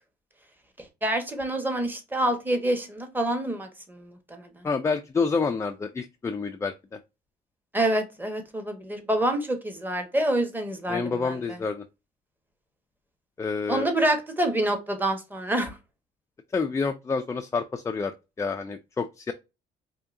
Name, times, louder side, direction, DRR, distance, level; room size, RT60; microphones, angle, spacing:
voice 1, 1.0-4.7 7.7-11.6 13.7-15.7, right 1 dB, 10° right, 1.1 m, -27 dB
voice 2, 4.6-6.7 10.9-11.8 13.4-13.9 16.5-18.1 18.4-19.3, left 4 dB, 15° left, 0.4 m, -28 dB
4.6 x 2.7 x 2.6 m
cardioid pair, 110°, 17 cm